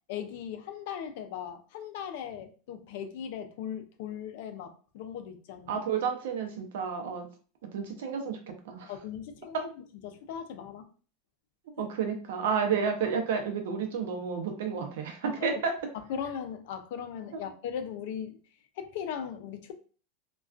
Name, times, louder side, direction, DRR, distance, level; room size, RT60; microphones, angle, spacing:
voice 1, 0.1-5.8 8.9-9.7 10.0-10.9 11.8-11.9 15.4-15.5 16.1-18.4 18.8-19.7, left 8 dB, 60° left, 0.4 m, -38 dB
voice 2, 5.7-7.3 7.6-8.9 9.5-9.6 11.8-15.7, right 6 dB, 80° right, 0.6 m, -31 dB
2.3 x 2.2 x 2.4 m
supercardioid pair, 165°, 0 cm